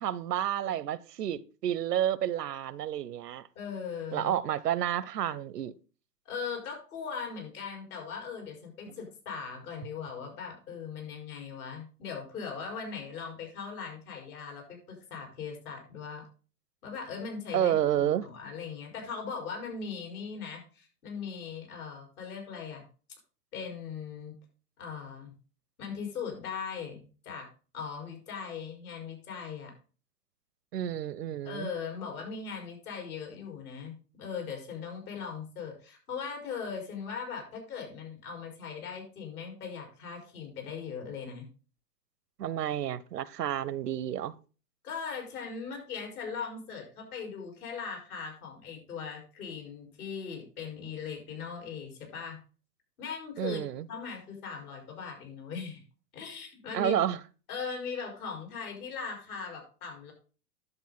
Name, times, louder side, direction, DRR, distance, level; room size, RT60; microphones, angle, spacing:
voice 1, 0.0-3.5 4.1-5.7 17.5-18.3 30.7-31.7 42.4-44.3 53.4-53.9 56.7-57.2, right 11 dB, 85° right, 0.7 m, -30 dB
voice 2, 3.5-4.4 6.2-16.3 16.8-22.9 23.5-24.4 24.8-25.3 25.8-27.5 27.7-29.7 31.4-41.5 44.8-52.4 53.0-53.6 53.9-55.8 56.1-57.0 57.5-60.1, left 6 dB, 65° left, 5.0 m, -39 dB
11.0 x 7.0 x 4.0 m
hypercardioid pair, 125°, 47 cm